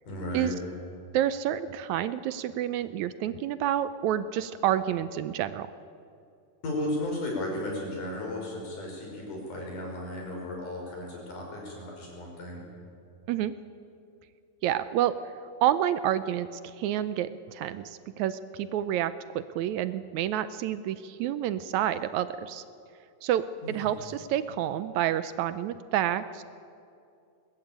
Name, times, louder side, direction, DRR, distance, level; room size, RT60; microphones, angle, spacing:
voice 1, 0.1-0.6 6.6-12.6 23.6-23.9, left 1 dB, 85° left, -1 dB, 7.0 m, -35 dB
voice 2, 1.1-5.7 13.3-13.5 14.6-15.1 15.6-22.6 23.2-26.4, right 11 dB, 75° right, 13 dB, 1.9 m, -29 dB
22.0 x 19.5 x 8.8 m, 2.5 s
omnidirectional pair, 3.6 m